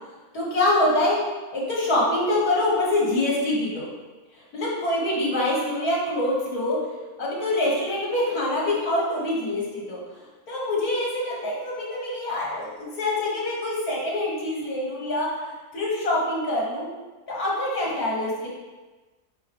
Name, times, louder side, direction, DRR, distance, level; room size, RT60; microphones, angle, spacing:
voice 1, 0.3-1.2 1.5-3.9 4.5-6.8 7.2-10.0 10.5-16.9 17.3-18.5, left 1 dB, 65° left, -5 dB, 2.3 m, -25 dB
10.5 x 4.0 x 3.1 m, 1.2 s
omnidirectional pair, 1.7 m